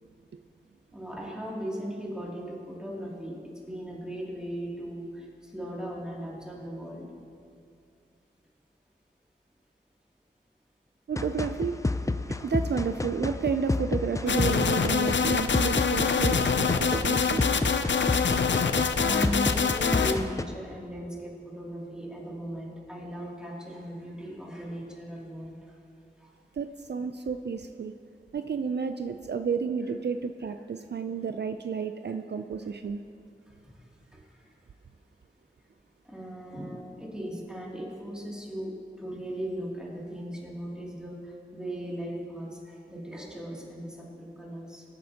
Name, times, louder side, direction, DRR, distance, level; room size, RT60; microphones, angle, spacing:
voice 1, 0.9-7.2 18.9-25.6 26.2-26.3 32.0-32.1 34.1-34.2 36.0-44.8, equal, 5° right, -4 dB, 2.6 m, -38 dB
voice 2, 11.1-18.8 26.6-27.9 28.3-33.0, right 6 dB, 65° right, 8 dB, 0.4 m, -32 dB
sound 1, 11.2-20.4, left 2 dB, 15° left, 0.4 m, -30 dB
sound 2, 14.3-20.1, left 5 dB, 80° left, 0.5 m, -25 dB
20.5 x 8.5 x 2.9 m, 2.4 s
wide cardioid pair, 50°, 19 cm